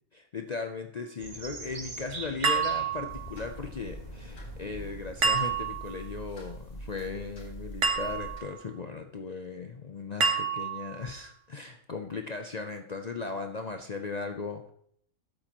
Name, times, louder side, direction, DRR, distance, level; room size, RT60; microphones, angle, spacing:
voice 1, 0.1-14.7, left 4 dB, 55° left, 5 dB, 0.4 m, -37 dB
sound 1, 1.2-6.2, right 2 dB, 30° right, 1.4 m, -44 dB
sound 2, 2.4-3.4 5.2-6.0 7.8-8.5 10.2-11.0, right 5 dB, 60° right, 1.5 m, -28 dB
sound 3, 3.1-8.4, right 1 dB, 70° left, 2.3 m, -44 dB
13.0 x 7.7 x 3.0 m, 0.66 s
omnidirectional pair, 1.5 m